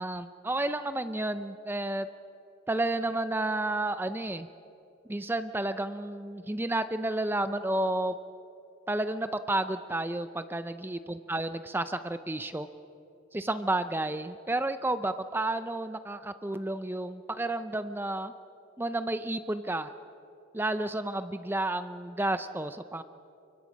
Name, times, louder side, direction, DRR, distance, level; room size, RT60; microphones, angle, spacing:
voice 1, 0.0-2.1 2.7-4.5 5.1-8.1 8.9-12.7 13.3-18.3 18.8-19.9 20.5-23.0, right 2 dB, 10° right, 11 dB, 0.5 m, -31 dB
29.0 x 23.5 x 5.3 m, 2.8 s
head